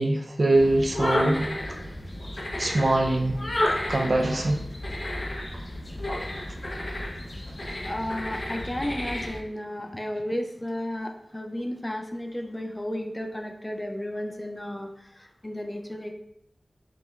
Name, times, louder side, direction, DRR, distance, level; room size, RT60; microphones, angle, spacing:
voice 1, 0.0-1.4 2.6-3.4 3.9-4.6, right 2 dB, 55° right, 2 dB, 0.5 m, -23 dB
sound 1, 0.5-9.4, left 1 dB, 45° left, 0.7 m, -32 dB
voice 2, 7.8-16.1, left 1 dB, 20° left, 3 dB, 0.4 m, -33 dB
5.1 x 3.1 x 2.4 m, 0.78 s
wide cardioid pair, 70°, 0 cm